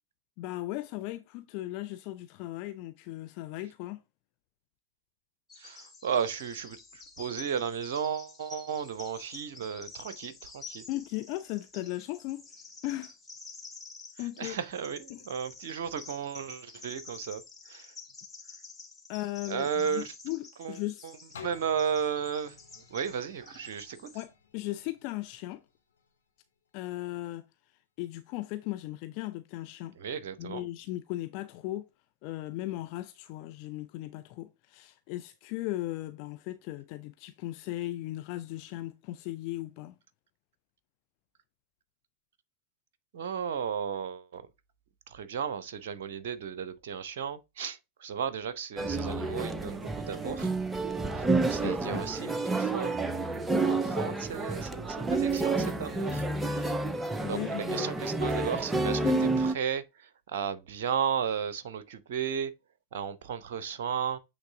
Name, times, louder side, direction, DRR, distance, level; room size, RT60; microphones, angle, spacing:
voice 1, 0.4-4.0 10.9-12.4 12.8-13.1 14.2-14.6 15.1-15.2 19.1-21.1 24.1-25.6 26.7-27.5 28.0-30.0 30.4-31.9 32.2-40.0 51.6-52.0 57.2-58.0 59.0-59.3, left 16 dB, 45° left, 0.4 m, -37 dB
Bird vocalization bird call bird song, 5.5-24.3, left 4 dB, 10° left, 1.3 m, -49 dB
voice 2, 5.6-10.8 14.4-17.9 19.5-20.1 20.6-24.2 30.0-30.7 43.1-44.4 45.1-50.5 51.1-53.0 53.6-56.7 57.3-59.0 59.4-62.5 62.9-64.2, right 7 dB, 55° right, 0.7 m, -34 dB
sound 1, 21.3-27.1 27.6-27.7, left 7 dB, 65° left, 1.4 m, -53 dB
sound 2, 48.8-59.5, right 3 dB, 10° right, 0.6 m, -30 dB
8.0 x 3.4 x 3.6 m
figure-of-eight pair, 90°, 0 cm